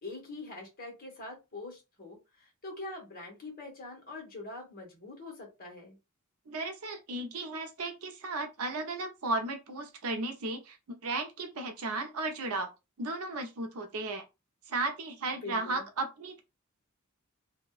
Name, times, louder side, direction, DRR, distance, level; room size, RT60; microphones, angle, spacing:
voice 1, 0.0-6.0 15.4-15.8, left 2 dB, 45° left, 1.3 m, -44 dB
voice 2, 6.5-10.8 11.0-12.7 13.0-14.2 14.7-16.4, right 2 dB, 85° right, 0.6 m, -35 dB
2.7 x 2.2 x 2.3 m
head